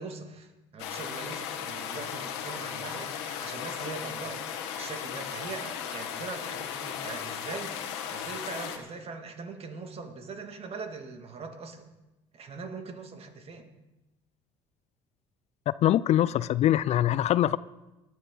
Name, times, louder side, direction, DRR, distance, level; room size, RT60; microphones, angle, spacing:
voice 1, 0.0-11.8 12.3-13.7, right 4 dB, 45° right, 2.2 m, -41 dB
sound 1, 0.8-8.8, left 8 dB, 85° left, 1.5 m, -36 dB
voice 2, 15.7-17.6, left 12 dB, 50° left, 0.4 m, -23 dB
18.5 x 11.5 x 3.9 m
supercardioid pair, 75°, 14 cm